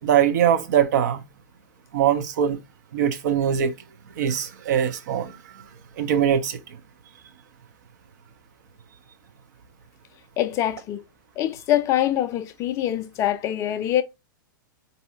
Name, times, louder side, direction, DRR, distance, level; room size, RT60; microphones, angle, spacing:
voice 1, 0.0-1.2 1.9-2.6 2.9-3.7 4.2-5.4 6.0-6.6, right 9 dB, 55° right, 0.6 m, -22 dB
voice 2, 10.4-11.0 11.4-14.0, left 12 dB, 25° left, 0.4 m, -24 dB
4.0 x 2.7 x 2.6 m
figure-of-eight pair, 105°, 11 cm